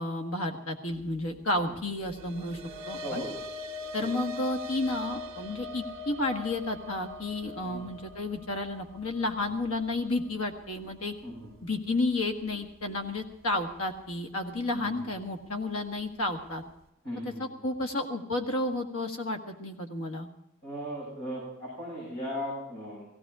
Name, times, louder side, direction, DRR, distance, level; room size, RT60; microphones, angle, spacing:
voice 1, 0.0-2.6 2.9-3.2 3.9-11.1 11.6-16.6 17.4-20.3, left 2 dB, 80° left, 4 dB, 1.7 m, -31 dB
sound 1, 2.0-10.6, left 3 dB, 50° right, 1.6 m, -41 dB
voice 2, 3.0-3.4 4.0-4.1 7.6-7.8 11.2-11.5 14.7-14.9 17.0-17.5 20.6-23.1, equal, 55° left, -5 dB, 7.7 m, -37 dB
17.0 x 16.5 x 4.9 m, 0.79 s
head